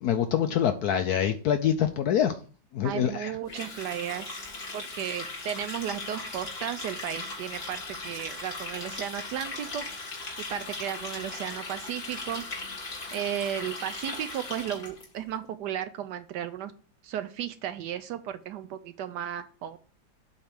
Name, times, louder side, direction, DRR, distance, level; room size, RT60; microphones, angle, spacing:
voice 1, 0.0-2.4 2.7-3.4, left 9 dB, 70° left, 8 dB, 0.9 m, -25 dB
voice 2, 2.8-4.4 4.7-9.8 10.5-12.4 13.1-16.7 17.0-19.8, right 10 dB, 75° right, 11 dB, 1.0 m, -34 dB
Water tap faucet, 3.5-15.0, left 3 dB, 30° left, 1.9 m, -38 dB
7.9 x 3.3 x 5.8 m, 0.40 s
omnidirectional pair, 2.1 m